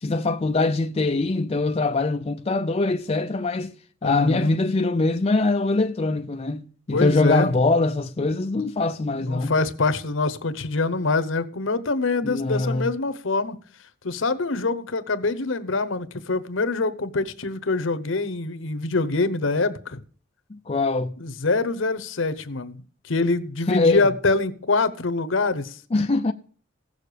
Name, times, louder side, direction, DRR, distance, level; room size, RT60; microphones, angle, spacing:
voice 1, 0.0-3.7 4.0-9.6 12.2-12.9 20.5-21.1 23.7-24.1 25.9-26.3, left 3 dB, 30° left, 0.5 m, -23 dB
voice 2, 4.0-4.6 6.9-7.5 9.2-13.6 14.0-20.0 21.2-25.8, left 3 dB, 70° left, 1.0 m, -25 dB
16.0 x 6.6 x 6.8 m
head